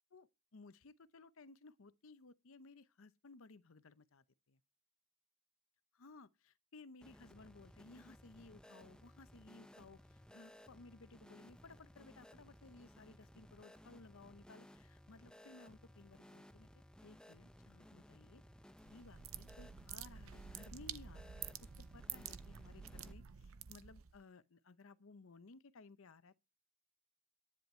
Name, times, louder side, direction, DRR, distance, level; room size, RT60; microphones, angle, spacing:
voice 1, 0.1-4.6 5.9-16.7 17.0-18.4 18.8-26.4, left 3 dB, 75° left, 0.7 m, -59 dB
sound 1, 7.0-23.1, equal, 5° left, 0.6 m, -60 dB
sound 2, 18.8-24.2, right 9 dB, 75° right, 0.7 m, -49 dB
10.5 x 9.8 x 4.4 m
head